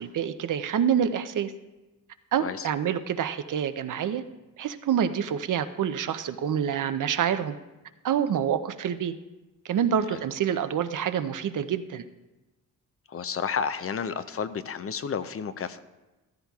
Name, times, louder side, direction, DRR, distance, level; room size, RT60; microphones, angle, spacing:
voice 1, 0.0-1.5 2.3-4.2 4.6-7.6 8.0-9.1 9.6-12.0, right 8 dB, 60° right, 11 dB, 0.6 m, -27 dB
voice 2, 13.1-15.8, left 6 dB, 40° left, 12 dB, 0.5 m, -31 dB
14.0 x 13.5 x 2.4 m, 1.1 s
cardioid pair, 100°, 34 cm